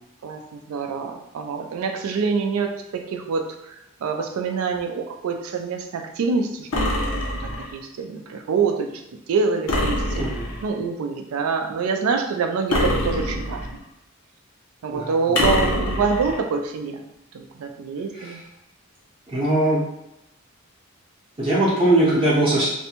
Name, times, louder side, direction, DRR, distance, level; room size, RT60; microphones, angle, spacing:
voice 1, 0.2-3.8 4.0-7.2 7.7-8.9 9.3-10.2 10.6-13.6 14.8-17.0 17.3-18.4, right 5 dB, 80° right, 5 dB, 0.3 m, -26 dB
sound 1, 6.7-7.8 9.7-10.7 12.7-13.8 15.3-16.4, left 1 dB, 90° left, 0.7 m, -24 dB
voice 2, 10.2-10.5 14.9-15.5 18.1-18.5 19.3-19.8 21.4-22.7, right 1 dB, 25° right, -7 dB, 0.6 m, -21 dB
2.6 x 2.1 x 2.8 m, 0.84 s
head